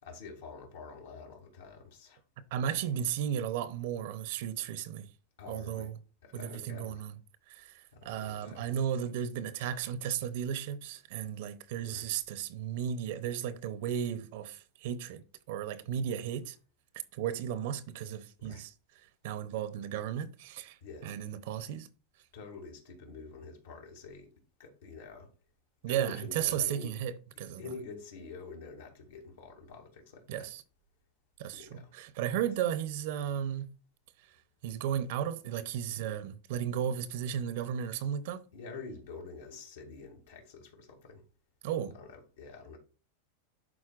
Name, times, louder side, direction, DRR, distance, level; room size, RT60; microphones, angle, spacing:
voice 1, 0.0-2.2 5.4-5.9 6.2-7.0 7.9-8.7 11.8-12.1 18.4-18.6 20.8-21.1 22.3-24.3 24.6-25.3 25.9-26.9 27.6-30.5 31.5-31.9 38.5-41.2 42.0-42.8, left 4 dB, 80° left, 2.4 m, -47 dB
voice 2, 2.5-5.1 5.5-6.0 6.3-7.1 7.5-16.6 17.1-18.7 19.2-20.8 21.0-21.9 25.8-27.1 27.4-27.6 30.3-30.6 31.4-33.7 34.6-38.4 41.6-41.9, right 9 dB, 65° right, 0.7 m, -34 dB
11.0 x 4.1 x 2.5 m
supercardioid pair, 130°, 0 cm